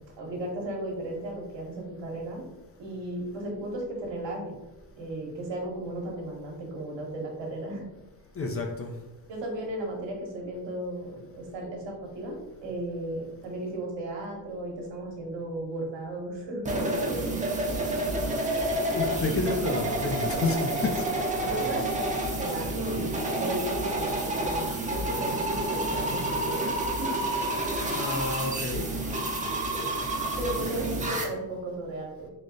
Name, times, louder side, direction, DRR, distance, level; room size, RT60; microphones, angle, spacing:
voice 1, 0.2-2.5 2.8-4.6 5.0-7.8 9.3-16.7 17.0-17.4 21.4-27.3 30.4-32.3, right 1 dB, 65° right, 0 dB, 1.2 m, -35 dB
voice 2, 8.4-8.9 18.9-21.1 27.9-28.9, left 2 dB, 30° left, 2 dB, 0.5 m, -29 dB
sound 1, 16.6-31.2, right 1 dB, 15° right, 0.7 m, -29 dB
3.9 x 2.1 x 3.7 m, 1.0 s
cardioid pair, 90°, 47 cm